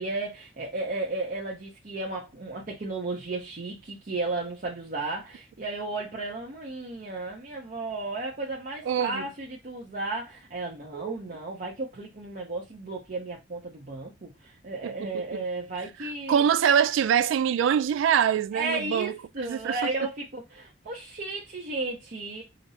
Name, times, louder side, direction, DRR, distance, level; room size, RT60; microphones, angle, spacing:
voice 1, 0.0-16.4 18.5-22.4, right 3 dB, 45° right, 0.7 m, -34 dB
voice 2, 8.9-9.3 10.9-11.1 14.8-15.4 16.0-19.8, right 8 dB, 90° right, 0.3 m, -25 dB
5.0 x 2.0 x 2.7 m
head